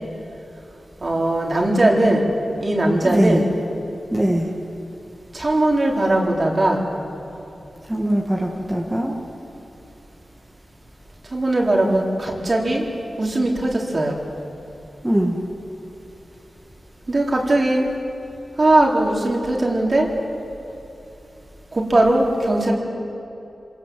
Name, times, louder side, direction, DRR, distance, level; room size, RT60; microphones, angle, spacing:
voice 1, 1.0-2.2 2.6-3.5 4.0-4.1 5.3-6.9 11.3-12.9 13.2-14.2 17.1-17.9 18.6-20.1 21.7-22.7, right 1 dB, 45° right, -1 dB, 3.8 m, -19 dB
voice 2, 3.0-3.4 4.1-4.5 7.9-9.2 15.0-15.4, right 1 dB, 15° right, -1 dB, 2.1 m, -21 dB
26.0 x 18.0 x 7.8 m, 3.0 s
cardioid pair, 60°, 0 cm